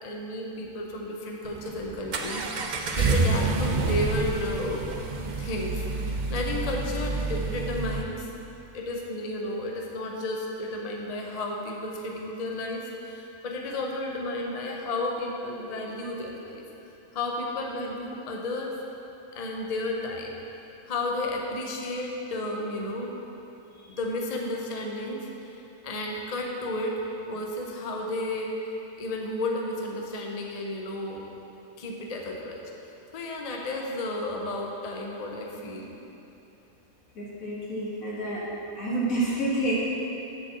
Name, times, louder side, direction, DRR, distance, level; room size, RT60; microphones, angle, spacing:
voice 1, 0.0-4.9 5.4-8.3 8.7-18.7 19.3-20.4 20.9-23.2 24.0-31.2 31.8-32.6 33.1-35.9, left 1 dB, 35° left, 0 dB, 0.7 m, -33 dB
Accelerating revving vroom, 1.4-8.0, right 3 dB, 50° right, 0.5 m, -28 dB
voice 2, 37.2-38.4 38.8-39.7, right 1 dB, 85° left, -7 dB, 1.9 m, -29 dB
7.5 x 5.1 x 7.2 m, 3.0 s
omnidirectional pair, 1.4 m